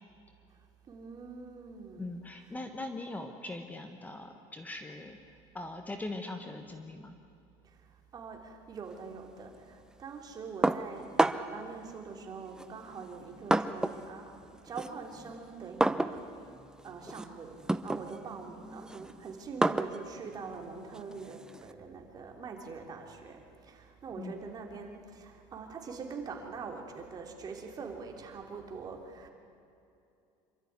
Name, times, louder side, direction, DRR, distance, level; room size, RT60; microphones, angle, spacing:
voice 1, 0.9-2.1 7.6-16.5 16.8-29.3, right 5 dB, 35° right, 2 dB, 3.3 m, -44 dB
voice 2, 2.0-5.2 5.5-7.2 24.1-24.4, left 2 dB, 15° left, 6 dB, 1.3 m, -41 dB
put to table a dish, 10.6-11.6 12.5-14.1 14.4-21.7, right 2 dB, 5° right, 0.7 m, -32 dB
27.0 x 13.0 x 9.7 m, 2.6 s
cardioid pair, 130°, 12 cm